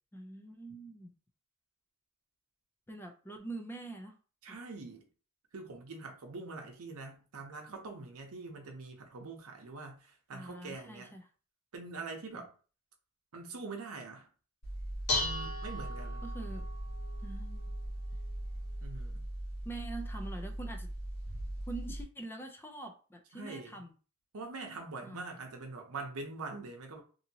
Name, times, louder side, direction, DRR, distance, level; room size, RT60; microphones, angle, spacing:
voice 1, 0.1-1.1 2.9-4.2 10.3-11.3 12.3-12.4 16.2-16.6 17.2-17.7 19.6-20.9 21.7-23.9 25.0-25.2, right 2 dB, 10° left, 0.4 m, -44 dB
voice 2, 4.4-5.0 5.5-11.1 11.7-12.5 13.3-14.3 15.1-16.2 18.8-19.3 23.3-23.8 24.3-27.0, right 3 dB, 80° right, 0.7 m, -44 dB
Dishes pots and pans, 14.6-22.0, equal, 85° left, 1.1 m, -38 dB
2.7 x 2.7 x 2.7 m
head